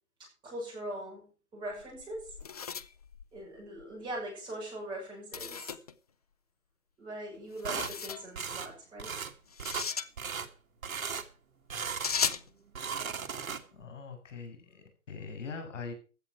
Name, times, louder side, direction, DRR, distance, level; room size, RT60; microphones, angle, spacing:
voice 1, 0.2-1.3 1.5-2.3 3.3-5.7 7.0-9.1, right 1 dB, 10° right, -3 dB, 6.2 m, -41 dB
sound 1, 1.7-3.9 5.3-5.9 7.6-8.3 9.5-10.1 12.0-12.5, left 6 dB, 25° left, 0.5 m, -36 dB
sound 2, 7.6-7.9 8.4-8.7 9.0-9.3 9.6-9.9 10.2-10.5 10.8-11.3 11.7-12.4 12.7-13.8, right 6 dB, 65° right, 2.2 m, -37 dB
voice 2, 13.7-15.9, left 5 dB, 55° left, 5 dB, 6.9 m, -42 dB
16.0 x 11.0 x 4.7 m, 0.36 s
hypercardioid pair, 155°, 44 cm